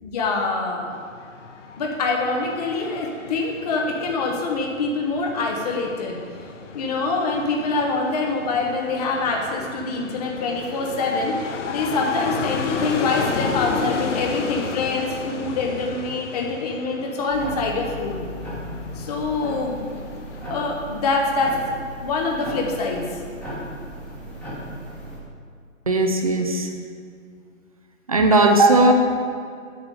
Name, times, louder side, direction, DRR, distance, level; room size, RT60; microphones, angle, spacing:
voice 1, 0.0-1.0 1.8-6.2 6.7-18.3 18.9-19.8 20.5-21.6 22.0-23.2, left 3 dB, 30° left, 1 dB, 0.8 m, -25 dB
sound 1, 0.9-20.5, left 5 dB, 65° left, 0.7 m, -33 dB
sound 2, 17.3-25.2, equal, 5° left, 1.0 m, -35 dB
voice 2, 25.9-26.7 28.1-28.9, right 2 dB, 30° right, 3 dB, 0.4 m, -17 dB
8.7 x 3.4 x 6.7 m, 2.2 s
hypercardioid pair, 145°, 39 cm